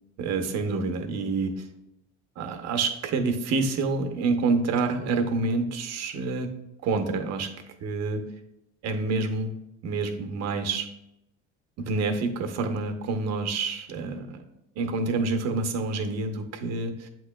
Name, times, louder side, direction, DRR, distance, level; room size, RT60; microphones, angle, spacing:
voice 1, 0.2-1.7 2.4-6.5 6.8-7.5 7.8-8.2 8.8-9.5 9.8-10.9 11.9-14.4 14.8-17.1, right 3 dB, 50° right, 6 dB, 0.8 m, -27 dB
7.8 x 3.0 x 2.2 m, 0.86 s
supercardioid pair, 85°, 34 cm